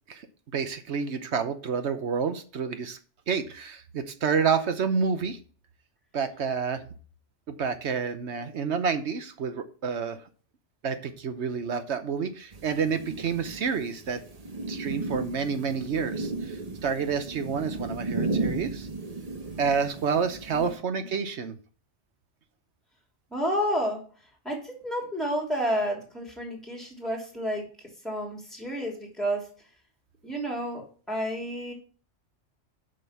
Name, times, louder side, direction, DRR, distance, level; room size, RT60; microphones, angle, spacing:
voice 1, 0.5-3.0 3.3-5.4 6.1-6.8 7.5-10.2 10.8-14.2 14.7-18.9 19.6-21.6, right 6 dB, 70° right, 9 dB, 1.1 m, -29 dB
sound 1, 12.5-20.7, right 3 dB, 35° right, 1.0 m, -34 dB
voice 2, 23.3-24.0 24.4-27.6 28.0-29.4 30.2-31.7, equal, ahead, -1 dB, 2.9 m, -30 dB
7.5 x 5.5 x 5.7 m, 0.40 s
omnidirectional pair, 1.2 m